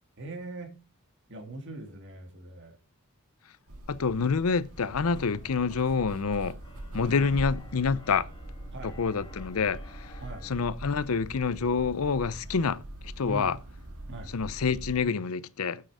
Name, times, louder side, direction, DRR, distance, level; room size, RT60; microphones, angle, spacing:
voice 1, 0.2-0.7 1.3-2.8 7.0-7.4 8.7-9.0 10.2-10.5 13.2-13.5 14.1-14.3, right 2 dB, 55° right, 2.3 m, -41 dB
sound 1, 3.7-15.0, right 1 dB, 85° right, 1.9 m, -42 dB
voice 2, 3.9-6.5 6.9-8.3 8.8-10.1 10.4-12.8 13.2-13.6 14.3-15.8, left 5 dB, 70° left, 0.6 m, -27 dB
Keyboard (musical), 4.7-10.5, left 1 dB, 25° left, 1.9 m, -55 dB
9.0 x 7.7 x 4.8 m
head